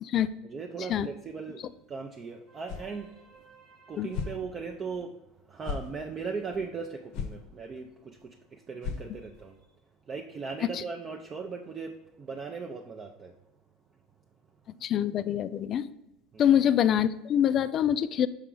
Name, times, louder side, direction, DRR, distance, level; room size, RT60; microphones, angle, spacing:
voice 1, 0.4-5.2 5.5-9.6 10.1-13.3 16.3-16.6, right 5 dB, 25° right, 3 dB, 0.5 m, -38 dB
Broom Handle Swish, 2.7-2.9 3.3-3.4 4.1-4.4 4.9-5.0 5.6-5.9 6.5-6.6 7.1-7.4 7.8-7.9 8.2-8.3 8.8-9.4, left 6 dB, 60° left, 0.7 m, -35 dB
voice 2, 14.8-15.9 16.4-18.3, left 10 dB, 40° left, 14 dB, 0.3 m, -25 dB
5.6 x 4.9 x 3.8 m, 0.95 s
supercardioid pair, 130°, 0 cm